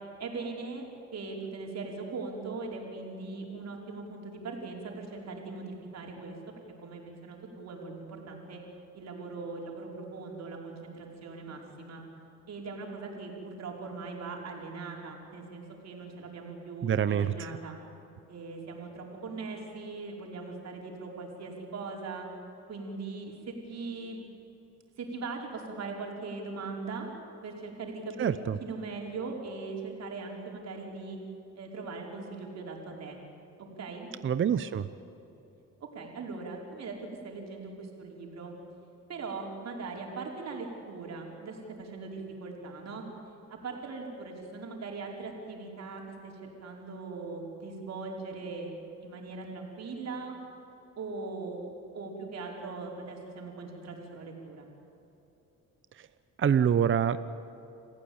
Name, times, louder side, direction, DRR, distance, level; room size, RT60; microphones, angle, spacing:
voice 1, 0.2-0.8 1.1-6.4 6.8-8.6 8.9-12.0 12.5-17.8 18.3-22.3 22.7-24.2 25.0-27.1 27.4-31.2 31.5-33.2 33.6-34.1 35.8-37.0 37.2-38.5 39.1-43.0 43.5-48.7 49.0-50.4 51.0-51.6 51.9-54.7, right 4 dB, 60° right, 0 dB, 5.1 m, -40 dB
voice 2, 16.8-17.6 28.2-28.6 34.2-34.9 56.4-57.2, right 8 dB, 40° right, 12 dB, 0.8 m, -26 dB
27.5 x 15.5 x 8.8 m, 3.0 s
cardioid pair, 90°, 30 cm